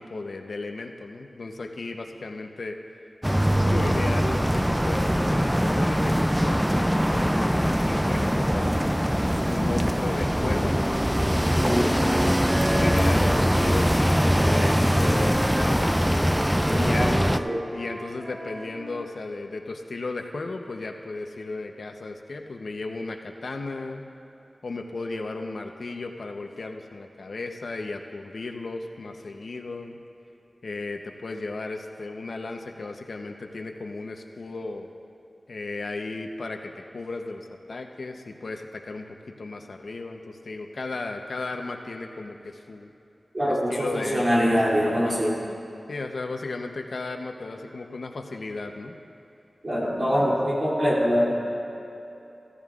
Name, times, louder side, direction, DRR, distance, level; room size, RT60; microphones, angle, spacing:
voice 1, 0.0-2.8 3.7-8.9 9.5-10.8 11.3-12.2 12.7-16.0 16.7-17.3 17.7-24.1 24.6-30.0 30.6-34.9 35.5-42.9 43.4-44.2 44.8-45.1 45.9-49.0 50.0-50.3, left 3 dB, 75° left, 4 dB, 0.8 m, -35 dB
sound 1, 3.2-17.4, equal, 5° right, 0.3 m, -22 dB
Wind instrument woodwind instrument, 8.4-13.4 14.1-19.1, equal, 25° right, 1.5 m, -37 dB
voice 2, 11.6-11.9 16.7-17.6 43.3-45.4 49.6-51.3, equal, 45° right, -7 dB, 2.8 m, -24 dB
15.5 x 14.5 x 2.4 m, 2.9 s
wide cardioid pair, 65°, 0 cm